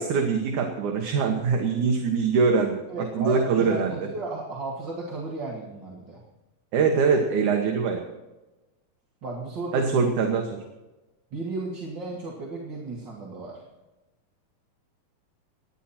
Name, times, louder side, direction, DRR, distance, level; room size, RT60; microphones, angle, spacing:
voice 1, 0.0-2.8 3.1-4.0 6.7-8.1 9.7-10.6, right 5 dB, 70° right, 2 dB, 2.7 m, -23 dB
voice 2, 2.9-6.2 9.2-10.0 11.3-13.5, right 2 dB, 35° right, -3 dB, 2.6 m, -34 dB
27.5 x 10.0 x 4.4 m, 1.1 s
omnidirectional pair, 3.7 m